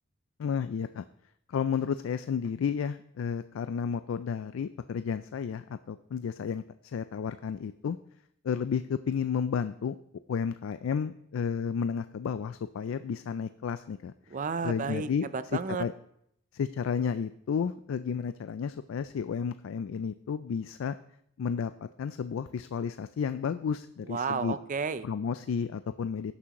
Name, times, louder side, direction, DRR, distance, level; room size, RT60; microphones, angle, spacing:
voice 1, 0.4-1.0 1.5-8.0 8.4-10.0 10.3-14.1 14.6-15.3 15.8-15.9 16.5-21.0 21.4-24.6 25.0-26.3, left 6 dB, 75° left, 12 dB, 0.3 m, -32 dB
voice 2, 14.3-15.8 24.1-25.1, right 5 dB, 40° right, 13 dB, 0.5 m, -32 dB
17.0 x 6.1 x 3.0 m, 0.72 s
head